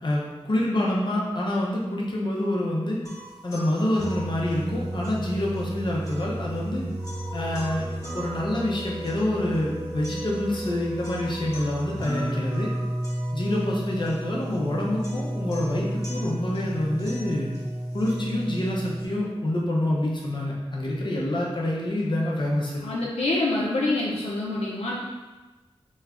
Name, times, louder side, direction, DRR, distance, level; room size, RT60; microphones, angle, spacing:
voice 1, 0.0-3.0 3.4-6.9 7.3-7.8 8.1-12.7 13.3-17.5 17.9-22.8, left 1 dB, 50° left, -4 dB, 0.8 m, -27 dB
sound 1, 3.0-19.0, right 1 dB, 30° left, 1.4 m, -33 dB
voice 2, 22.8-25.0, left 2 dB, 85° left, -4 dB, 0.5 m, -26 dB
3.1 x 2.2 x 3.7 m, 1.2 s
cardioid pair, 45°, 10 cm